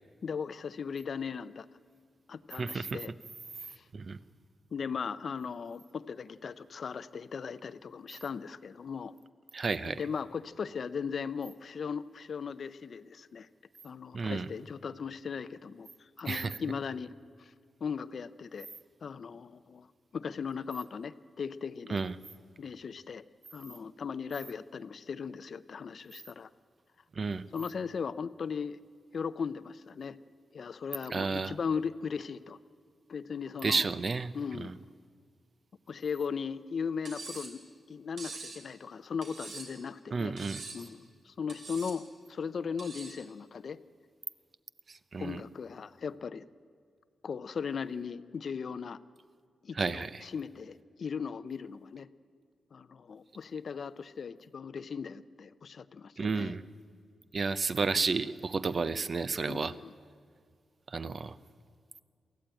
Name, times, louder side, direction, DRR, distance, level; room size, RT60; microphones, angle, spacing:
voice 1, 0.2-1.7 2.3-3.1 3.7-3.8 4.7-9.1 9.8-13.5 13.8-17.1 17.4-17.5 17.8-18.7 19.0-19.9 20.1-22.0 22.6-23.2 23.5-26.5 27.5-28.8 29.1-30.2 30.5-32.6 33.1-33.8 34.3-34.7 35.9-40.3 40.7-43.8 45.2-46.4 47.2-49.0 49.6-52.1 52.7-56.6 59.5-59.9, left 6 dB, 55° left, 15 dB, 0.6 m, -38 dB
voice 2, 2.6-3.0 3.9-4.2 9.5-10.0 14.1-14.5 16.3-16.5 21.9-22.1 27.2-27.4 31.1-31.5 33.6-34.7 40.1-40.6 44.9-45.4 49.7-50.2 56.2-56.6 57.3-59.7 60.9-61.3, right 4 dB, 40° right, 14 dB, 0.6 m, -32 dB
Cutlery silverware, 37.0-37.6 38.2-38.6 39.2-39.8 40.4-40.9 41.5-42.0 42.8-43.2, right 3 dB, 70° right, 3.6 m, -44 dB
23.0 x 15.5 x 8.9 m, 2.1 s
wide cardioid pair, 125°, 0 cm